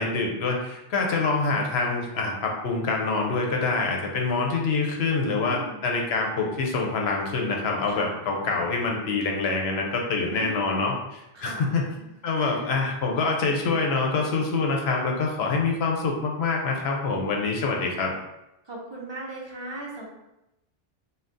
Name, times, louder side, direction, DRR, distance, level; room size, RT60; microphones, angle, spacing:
voice 1, 0.0-11.8 12.2-18.1, left 3 dB, 70° left, 0 dB, 0.8 m, -26 dB
voice 2, 5.3-5.8 7.8-8.1 10.3-10.9 11.3-11.6 12.4-12.7 18.7-20.1, right 2 dB, 35° right, -2 dB, 0.4 m, -38 dB
2.6 x 2.2 x 3.5 m, 0.91 s
omnidirectional pair, 1.1 m